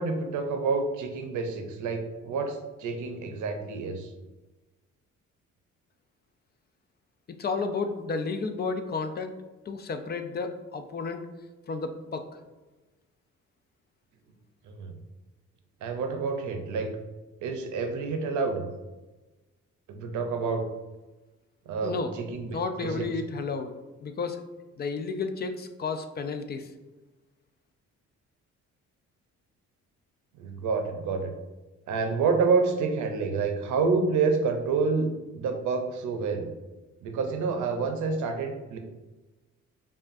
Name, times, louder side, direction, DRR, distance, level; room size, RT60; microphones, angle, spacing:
voice 1, 0.0-4.1 14.6-14.9 15.8-16.9 17.4-18.6 19.9-20.7 21.7-23.1 30.4-31.3 31.9-36.5 37.0-38.8, right 4 dB, 75° right, 5 dB, 0.6 m, -28 dB
voice 2, 7.4-9.3 9.7-11.2 11.7-12.3 21.8-22.1 22.5-23.7 24.0-24.4 24.8-26.7, left 4 dB, 35° left, 8 dB, 0.4 m, -32 dB
5.3 x 2.4 x 2.5 m, 1.2 s
cardioid pair, 90°, 30 cm